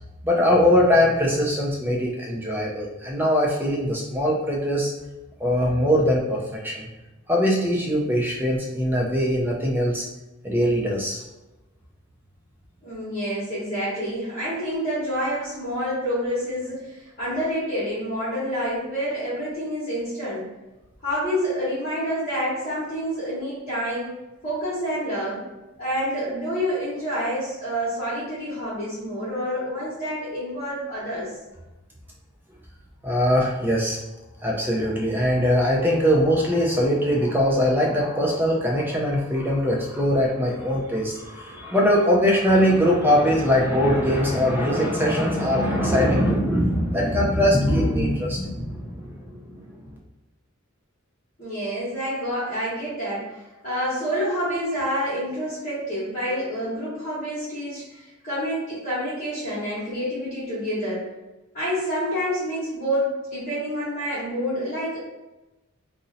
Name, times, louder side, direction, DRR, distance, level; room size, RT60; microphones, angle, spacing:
voice 1, 0.2-4.9 5.4-6.4 6.6-6.9 7.3-10.0 10.4-11.2 33.0-34.0 34.4-49.8, equal, 10° right, -2 dB, 0.4 m, -21 dB
voice 2, 12.8-20.5 21.0-24.1 24.4-25.4 25.8-31.3 51.4-61.1 61.5-65.0, equal, 40° left, -12 dB, 1.0 m, -28 dB
2.6 x 2.0 x 3.9 m, 1.0 s
head